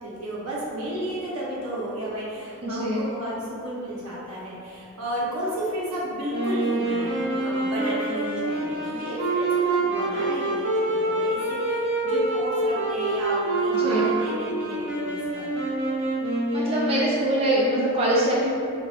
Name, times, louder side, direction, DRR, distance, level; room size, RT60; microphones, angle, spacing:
voice 1, 0.0-15.6, right 1 dB, 90° right, -7 dB, 1.0 m, -33 dB
voice 2, 2.6-3.0 13.7-14.1 16.5-18.5, right 1 dB, 25° right, -6 dB, 0.4 m, -23 dB
Wind instrument woodwind instrument, 6.3-17.4, right 2 dB, 55° right, 0.7 m, -26 dB
4.6 x 2.3 x 2.4 m, 2.5 s
head